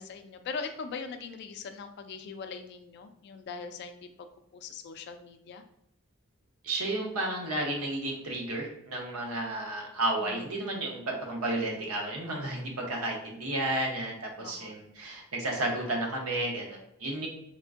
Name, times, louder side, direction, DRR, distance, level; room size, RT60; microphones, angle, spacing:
voice 1, 0.0-4.3 4.5-5.6 10.2-10.8 14.4-14.8, left 5 dB, 50° left, 7 dB, 0.3 m, -41 dB
voice 2, 6.6-17.3, right 1 dB, 80° right, 0 dB, 0.8 m, -32 dB
3.5 x 2.4 x 2.5 m, 0.77 s
head